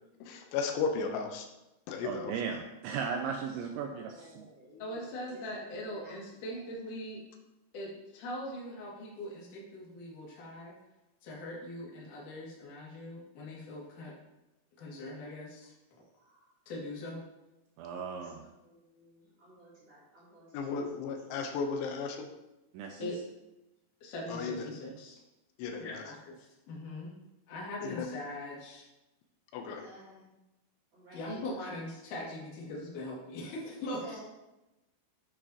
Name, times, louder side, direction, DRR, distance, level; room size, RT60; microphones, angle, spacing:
voice 1, 0.2-1.5 1.9-2.3 20.5-22.3 24.3-24.7 25.6-26.1 27.8-28.1 29.5-29.9 31.4-31.5, left 5 dB, 80° left, 4 dB, 2.9 m, -35 dB
voice 2, 2.0-4.5 17.8-18.5 22.7-23.1, right 6 dB, 90° right, 3 dB, 2.6 m, -36 dB
voice 3, 3.6-6.6 16.2-16.5 18.0-20.7 21.3-21.4 29.6-30.3 30.9-31.5 33.8-34.2, equal, 30° right, -13 dB, 2.8 m, -55 dB
voice 4, 4.8-7.2 7.7-10.7 11.2-14.1 14.8-15.7 16.7-17.2 23.0-23.2 24.0-25.2 25.8-27.1 27.5-28.9 31.1-34.2, left 1 dB, 50° left, -5 dB, 3.1 m, -41 dB
8.8 x 8.8 x 2.9 m, 0.97 s
omnidirectional pair, 5.9 m